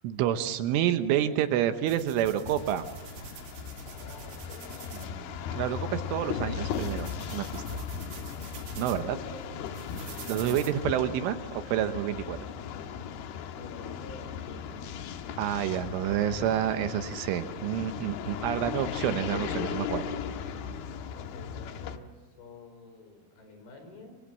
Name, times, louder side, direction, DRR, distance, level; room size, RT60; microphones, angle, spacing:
voice 1, 0.0-2.9 5.0-7.6 8.8-9.2 10.3-11.4 11.7-12.4 15.4-20.2, right 11 dB, 80° right, 9 dB, 3.5 m, -29 dB
sound 1, 1.9-10.7, right 8 dB, 60° right, 3.3 m, -47 dB
sound 2, 2.5-22.0, left 7 dB, 70° left, 2.6 m, -37 dB
voice 2, 3.9-4.7 8.8-9.9 13.5-15.2 21.1-24.1, left 3 dB, 50° left, 5 dB, 6.4 m, -48 dB
29.5 x 24.0 x 7.5 m, 1.2 s
omnidirectional pair, 5.9 m